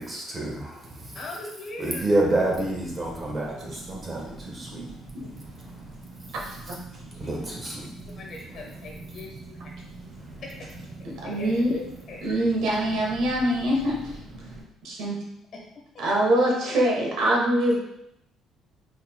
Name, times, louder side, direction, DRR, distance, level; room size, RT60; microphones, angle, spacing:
voice 1, 0.0-1.2 1.8-4.8 5.7-5.8 7.2-7.9, right 1 dB, 25° right, -2 dB, 1.3 m, -28 dB
voice 2, 1.1-2.0 7.1-7.3 8.2-9.6 11.2-11.5 12.1-12.2 15.7-16.0, left 2 dB, 50° left, -1 dB, 1.3 m, -41 dB
Car, 2.0-14.6, right 2 dB, 40° right, 1.8 m, -43 dB
voice 3, 11.0-11.8 12.2-14.2 14.8-15.2 16.0-17.8, right 1 dB, 70° right, -2 dB, 1.3 m, -24 dB
5.4 x 4.1 x 2.3 m, 0.80 s
cardioid pair, 145°, 0 cm